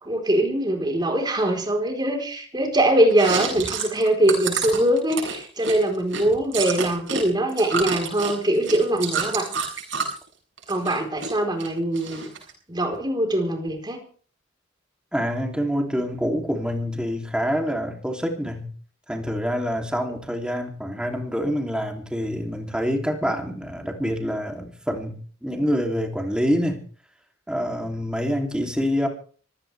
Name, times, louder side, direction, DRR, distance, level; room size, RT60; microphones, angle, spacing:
voice 1, 0.0-9.5 10.7-12.3 12.7-14.0, right 1 dB, 25° right, 3 dB, 4.2 m, -22 dB
Chewing mastication, 3.1-7.2 7.5-10.2 10.6-11.3 11.6-12.5, right 5 dB, 70° right, 7.0 m, -29 dB
voice 2, 15.1-18.7 19.1-26.8 27.5-29.1, equal, 5° right, 2 dB, 3.1 m, -26 dB
24.5 x 16.0 x 3.5 m, 0.43 s
head